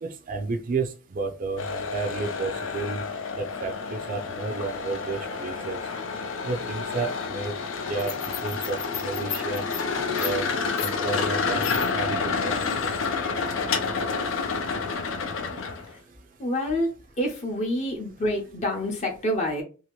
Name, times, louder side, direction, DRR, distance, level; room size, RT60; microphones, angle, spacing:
voice 1, 0.0-3.0 3.4-5.8 6.5-7.5 7.9-8.1 8.4-9.6 10.1-10.4 10.8-11.6 11.9-12.7, right 4 dB, 45° right, 5 dB, 0.4 m, -31 dB
sound 1, 1.6-15.9, left 5 dB, 80° left, 0.5 m, -29 dB
voice 2, 16.4-16.9 17.2-19.6, left 1 dB, 35° left, 1 dB, 0.7 m, -27 dB
2.7 x 2.5 x 3.0 m, 0.34 s
head